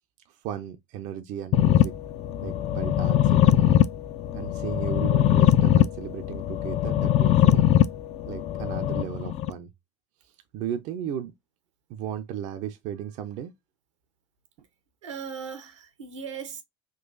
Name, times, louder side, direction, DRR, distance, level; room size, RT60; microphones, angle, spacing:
voice 1, 0.3-1.9 2.4-3.8 4.3-7.6 8.3-9.7 10.2-11.3 11.9-13.5, right 9 dB, 55° right, 0.5 m, -35 dB
sound 1, 1.5-9.5, left 12 dB, 45° left, 0.4 m, -22 dB
voice 2, 15.0-16.6, right 6 dB, 85° right, 0.9 m, -38 dB
3.8 x 2.4 x 2.5 m
hypercardioid pair, 75°, 15 cm